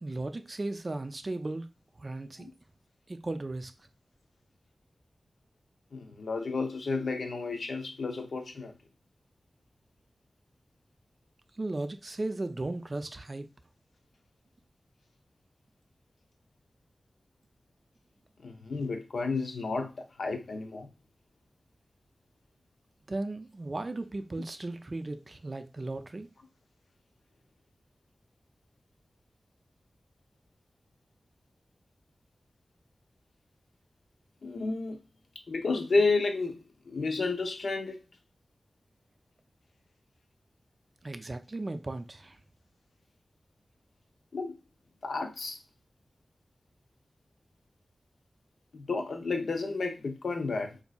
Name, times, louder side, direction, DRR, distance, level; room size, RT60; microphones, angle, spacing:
voice 1, 0.0-1.7 2.0-2.5 3.1-3.7 11.6-13.5 23.1-26.3 41.0-42.4, right 2 dB, 40° right, 0.4 m, -36 dB
voice 2, 5.9-8.7 18.4-20.9 34.4-35.0 35.5-38.0 44.3-44.6 45.0-45.6 48.7-50.8, left 3 dB, 90° left, 0.6 m, -31 dB
4.1 x 2.6 x 2.3 m
wide cardioid pair, 65°, 0 cm